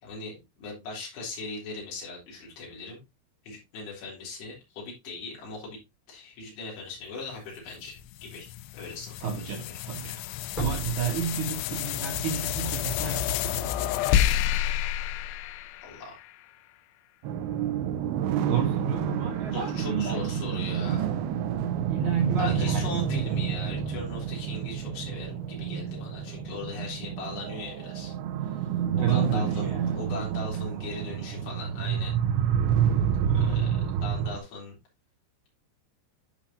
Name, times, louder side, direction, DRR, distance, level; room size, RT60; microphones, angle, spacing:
voice 1, 0.0-3.0 3.4-5.8 6.1-8.5 8.7-9.3 9.7-9.8 15.8-16.1 19.5-21.2 22.4-28.2 28.4-32.2 33.4-34.8, left 3 dB, 65° left, 5.7 m, -39 dB
sound 1, 7.3-7.4 8.0-8.1 10.5-12.0 12.4-12.5, left 1 dB, 15° left, 1.6 m, -37 dB
sound 2, 7.7-16.3, left 11 dB, 85° left, 2.5 m, -30 dB
voice 2, 9.2-10.2 10.6-13.9 18.5-20.4 21.9-23.2 29.0-30.0 33.2-33.7, right 7 dB, 65° right, 2.0 m, -31 dB
sound 3, 17.2-34.4, right 8 dB, 80° right, 2.2 m, -29 dB
11.5 x 5.2 x 2.8 m
omnidirectional pair, 5.2 m